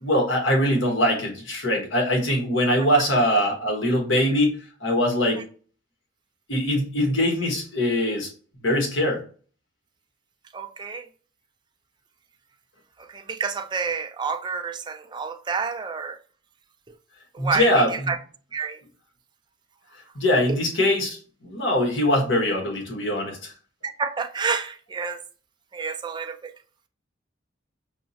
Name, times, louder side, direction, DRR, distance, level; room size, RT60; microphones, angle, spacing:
voice 1, 0.0-4.6 4.8-5.4 6.5-8.3 8.6-9.2 17.4-18.1 20.1-21.2 21.4-23.5, left 1 dB, 75° left, 0 dB, 1.2 m, -22 dB
voice 2, 10.5-11.0 13.3-16.2 17.4-17.7 18.1-18.2 18.5-18.8 24.0-25.2 25.7-26.5, right 5 dB, 25° right, 8 dB, 0.3 m, -28 dB
5.5 x 2.0 x 2.7 m, 0.41 s
head